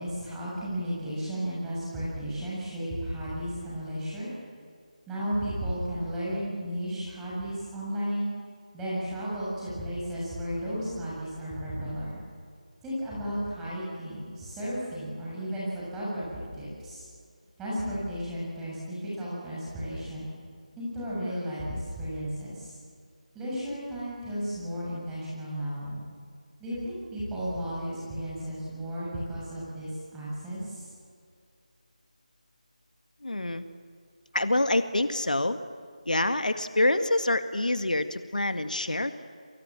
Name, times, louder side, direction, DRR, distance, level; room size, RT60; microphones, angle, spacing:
voice 1, 0.0-4.3 5.1-8.3 8.7-12.2 12.8-17.0 17.6-20.3 20.8-22.7 23.3-26.0 26.6-30.9, equal, 5° right, -8 dB, 7.4 m, -34 dB
voice 2, 33.2-33.6 34.3-35.6 36.1-39.1, left 2 dB, 85° left, 9 dB, 1.9 m, -26 dB
29.5 x 23.5 x 7.6 m, 2.2 s
figure-of-eight pair, 165°, 4 cm